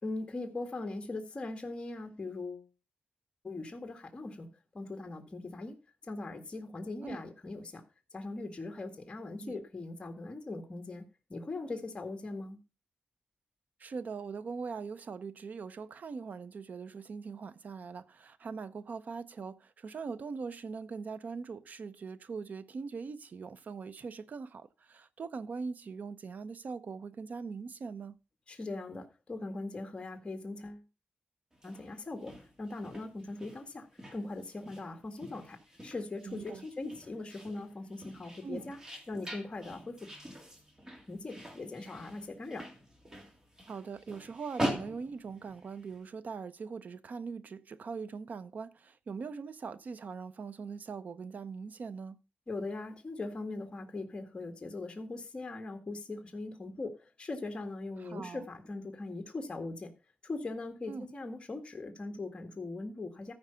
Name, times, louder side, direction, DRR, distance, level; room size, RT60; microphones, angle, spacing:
voice 1, 0.0-2.7 3.4-4.5 4.7-5.7 6.0-7.8 8.1-11.0 11.3-12.6 28.5-30.8 31.6-35.6 35.8-38.8 39.1-40.1 41.1-42.7 52.5-59.9 60.2-63.3, left 2 dB, 30° left, 1.8 m, -40 dB
voice 2, 13.8-28.2 36.2-36.7 38.4-38.6 43.7-52.2 58.0-58.5 60.9-61.1, right 5 dB, 55° right, 0.7 m, -41 dB
sound 1, 31.5-46.0, equal, 20° right, 2.5 m, -43 dB
14.0 x 4.9 x 5.6 m
wide cardioid pair, 115°, 3 cm